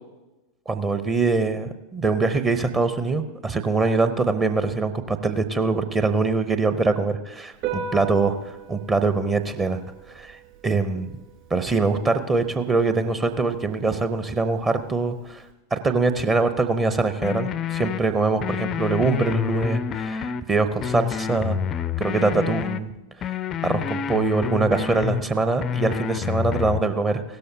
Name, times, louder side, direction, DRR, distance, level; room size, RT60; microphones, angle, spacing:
voice 1, 0.7-9.8 10.1-11.1 11.5-15.4 15.7-21.6 22.0-22.9 23.6-27.2, right 3 dB, 20° right, 10 dB, 0.7 m, -23 dB
Piano, 7.5-15.5, right 5 dB, 45° right, 3.0 m, -39 dB
sound 1, 17.2-18.0 18.4-20.4 20.8-22.8 23.2-25.2 25.6-26.8, left 9 dB, 30° left, 0.4 m, -28 dB
16.5 x 13.0 x 2.8 m, 1.1 s
figure-of-eight pair, 90°, 0 cm